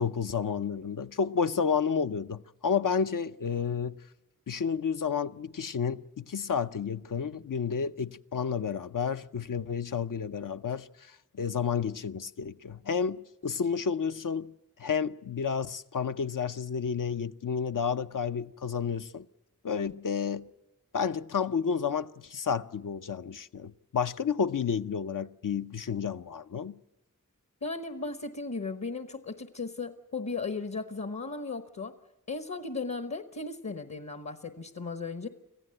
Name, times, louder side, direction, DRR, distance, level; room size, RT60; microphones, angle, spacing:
voice 1, 0.0-4.0 4.5-14.5 14.8-19.3 19.6-20.5 20.9-26.8, left 6 dB, 75° left, 0.6 m, -31 dB
voice 2, 27.6-31.9 32.3-35.3, left 3 dB, 55° left, 1.2 m, -36 dB
25.5 x 15.5 x 7.8 m
wide cardioid pair, 45°, 33 cm